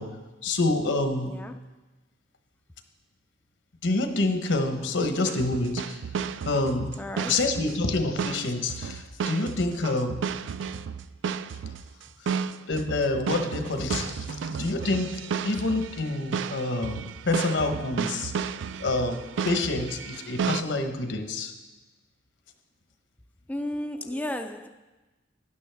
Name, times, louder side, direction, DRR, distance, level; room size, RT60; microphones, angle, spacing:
voice 1, 0.0-1.4 3.8-6.0 6.4-7.0 7.3-10.3 12.7-18.3 18.8-21.5, left 2 dB, 75° left, 6 dB, 1.0 m, -27 dB
voice 2, 1.2-1.6 7.0-7.4 23.5-24.7, left 1 dB, 10° left, 6 dB, 0.3 m, -33 dB
sound 1, 5.2-20.6, right 6 dB, 75° right, 0.3 m, -33 dB
12.5 x 10.0 x 3.4 m, 1.2 s
head